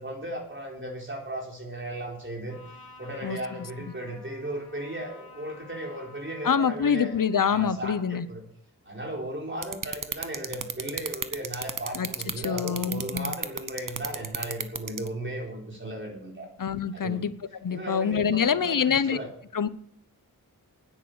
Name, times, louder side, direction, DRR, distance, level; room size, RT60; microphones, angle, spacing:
voice 1, 0.0-2.6 3.0-7.1 7.4-8.4 8.9-16.5 16.9-17.2 17.7-19.3, right 1 dB, 30° right, 0 dB, 4.3 m, -36 dB
Trumpet, 2.5-7.4, left 3 dB, 85° left, 3.4 m, -51 dB
voice 2, 6.4-8.3 11.9-12.1 12.4-13.3 16.6-17.3 17.6-19.2 19.5-19.7, left 7 dB, 60° left, 15 dB, 0.8 m, -25 dB
sound 1, 9.6-15.1, right 6 dB, 60° right, 1.1 m, -31 dB
9.8 x 9.7 x 8.2 m, 0.65 s
wide cardioid pair, 65°, 36 cm